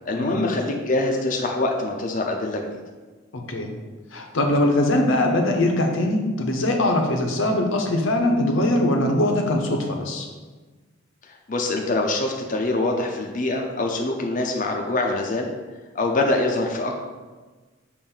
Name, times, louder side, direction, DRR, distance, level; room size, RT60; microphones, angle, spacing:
voice 1, 0.1-2.7 11.3-15.5 15.9-16.9, left 2 dB, 40° left, 1 dB, 0.6 m, -24 dB
voice 2, 3.3-3.7 4.1-10.3, left 1 dB, 75° left, 3 dB, 0.9 m, -22 dB
7.0 x 2.6 x 5.5 m, 1.3 s
head